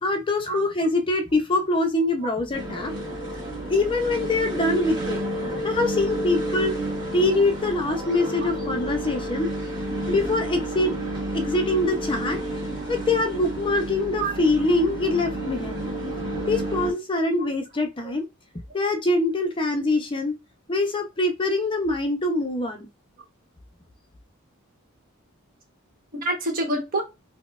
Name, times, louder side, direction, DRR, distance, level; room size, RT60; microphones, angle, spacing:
voice 1, 0.0-2.9 3.7-5.2 5.6-6.7 7.1-9.5 10.1-11.0 11.3-12.4 12.9-15.8 16.5-18.3 18.7-20.4 20.7-22.9, left 2 dB, 25° left, 0.5 m, -24 dB
sound 1, 2.5-16.9, right 1 dB, 25° right, 1.8 m, -30 dB
voice 2, 26.1-27.0, right 2 dB, 45° right, 1.0 m, -28 dB
4.2 x 2.1 x 2.3 m
head